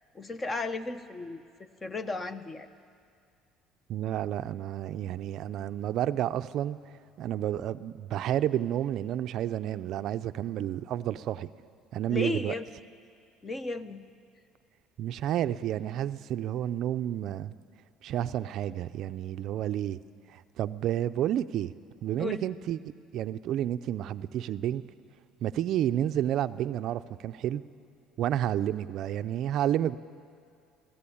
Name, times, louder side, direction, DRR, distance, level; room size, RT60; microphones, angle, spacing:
voice 1, 0.1-1.4 1.8-2.7 12.1-12.7 13.4-14.0 22.2-22.5, left 3 dB, 20° left, 11 dB, 0.9 m, -34 dB
voice 2, 3.9-6.8 7.2-11.5 11.9-12.6 15.0-17.5 18.0-20.0 20.3-21.7 22.0-22.8 23.1-24.8 25.4-27.6 28.2-30.0, right 11 dB, 55° right, 12 dB, 0.5 m, -30 dB
24.0 x 15.5 x 8.6 m, 2.3 s
cardioid pair, 135°, 0 cm